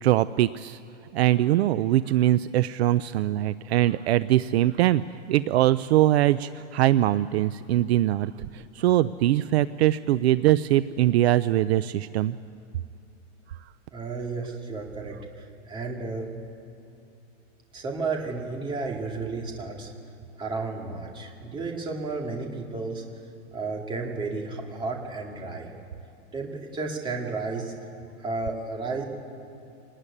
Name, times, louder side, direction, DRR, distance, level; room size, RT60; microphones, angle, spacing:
voice 1, 0.0-0.8 1.1-5.0 5.3-12.3, right 14 dB, 60° right, 15 dB, 0.6 m, -22 dB
voice 2, 13.9-16.3 17.7-19.9 20.4-23.0 23.5-25.7 26.3-27.7 28.2-29.0, right 3 dB, 10° right, 1 dB, 2.2 m, -32 dB
25.0 x 19.0 x 9.9 m, 2.7 s
supercardioid pair, 175°, 38 cm